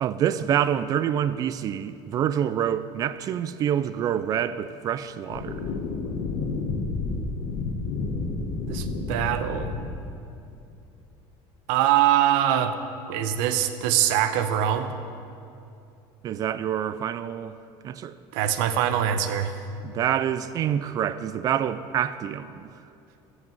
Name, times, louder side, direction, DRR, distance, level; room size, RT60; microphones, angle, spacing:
voice 1, 0.0-5.7 9.0-9.1 16.2-17.5 17.8-18.1 19.8-22.7, right 9 dB, 35° right, 14 dB, 0.3 m, -27 dB
sound 1, 5.3-10.3, left 3 dB, 65° left, 1.4 m, -30 dB
voice 2, 8.7-9.8 11.7-12.7 13.1-14.9 18.3-19.5, right 11 dB, 80° right, 9 dB, 0.9 m, -23 dB
14.5 x 6.1 x 7.6 m, 2.7 s
cardioid pair, 165°, 11 cm